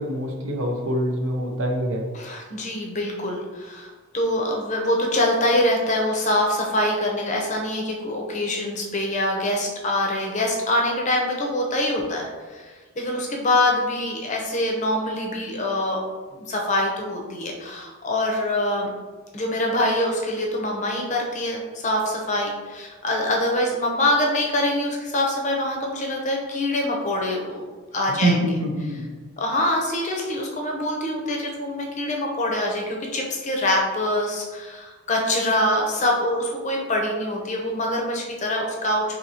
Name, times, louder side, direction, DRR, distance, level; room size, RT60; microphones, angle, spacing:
voice 1, 0.0-2.1 28.2-29.0, right 1 dB, 65° right, 2 dB, 0.6 m, -24 dB
voice 2, 2.1-16.0 16.3-18.9 19.3-27.7 27.9-28.4 29.4-39.2, left 1 dB, 30° left, 0 dB, 0.6 m, -24 dB
4.2 x 2.8 x 2.8 m, 1.4 s
head